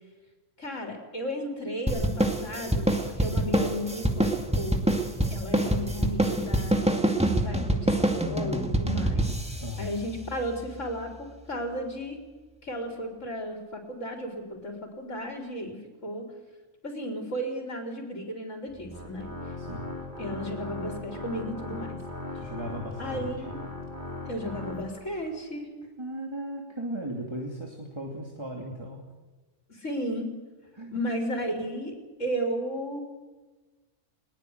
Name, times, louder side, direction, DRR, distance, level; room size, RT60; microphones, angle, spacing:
voice 1, 0.6-4.8 5.3-12.2 12.6-16.3 16.8-19.5 20.2-22.0 23.0-23.6 24.3-25.7 29.7-30.3 30.9-33.0, equal, 90° left, 2 dB, 4.0 m, -34 dB
sound 1, 1.9-10.7, right 1 dB, 5° right, 2.0 m, -26 dB
voice 2, 9.6-10.0 19.6-19.9 22.3-23.3 26.0-29.0 30.7-31.0, equal, 20° right, 0 dB, 2.9 m, -37 dB
Organ, 18.7-25.3, left 2 dB, 40° right, 4.2 m, -38 dB
21.0 x 19.5 x 8.0 m, 1.3 s
omnidirectional pair, 1.3 m